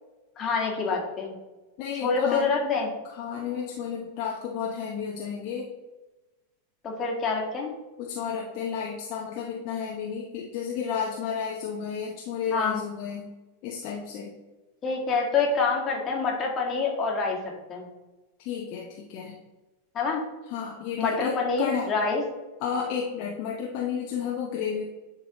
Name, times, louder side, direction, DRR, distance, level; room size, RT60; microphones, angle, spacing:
voice 1, 0.4-1.3 2.0-2.9 6.8-7.7 12.5-12.8 14.8-17.9 20.0-20.2 21.0-22.2, left 4 dB, 25° left, 0 dB, 1.6 m, -26 dB
voice 2, 1.8-2.5 3.0-5.7 8.0-13.3 13.6-14.3 18.4-19.4 20.5-21.9 22.6-24.9, left 7 dB, 45° left, -1 dB, 0.7 m, -32 dB
10.0 x 4.0 x 2.9 m, 1.1 s
figure-of-eight pair, 90°, 0 cm